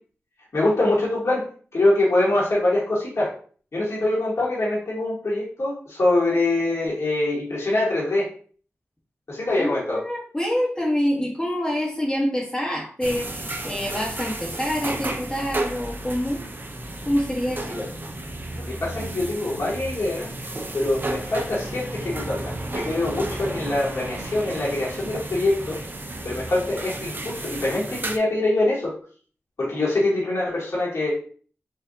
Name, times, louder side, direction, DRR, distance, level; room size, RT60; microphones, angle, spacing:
voice 1, 0.5-1.4 1.7-3.3 3.7-8.2 9.3-10.0 17.8-17.9 18.5-20.3 20.7-25.8 26.2-28.9 29.6-31.1, left 2 dB, 65° left, -6 dB, 1.6 m, -24 dB
voice 2, 9.6-16.4 17.0-17.8, equal, 15° left, -4 dB, 1.0 m, -26 dB
sound 1, 13.0-28.2, right 2 dB, 40° right, 0.6 m, -33 dB
4.4 x 2.5 x 2.6 m, 0.43 s
cardioid pair, 40°, 5 cm